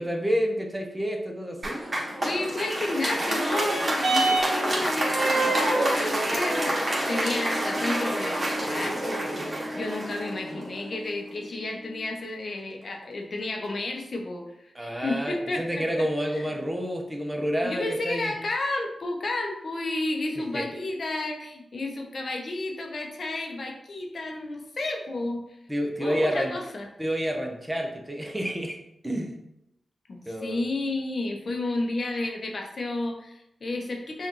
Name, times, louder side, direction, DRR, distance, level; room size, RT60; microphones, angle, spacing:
voice 1, 0.0-1.8 14.7-18.3 20.5-20.7 25.7-26.5 27.0-28.8 29.0-29.3 30.3-30.6, equal, 15° right, 2 dB, 0.8 m, -29 dB
Applause, 1.6-11.0, right 1 dB, 35° right, 1.3 m, -28 dB
voice 2, 2.2-9.2 9.7-16.4 17.6-25.4 26.0-26.9 30.1-34.3, left 2 dB, 60° left, 2 dB, 0.7 m, -32 dB
sound 1, 3.2-12.2 13.0-13.1, right 2 dB, 80° right, 0.9 m, -31 dB
5.3 x 2.5 x 3.0 m, 0.84 s
supercardioid pair, 40°, 0 cm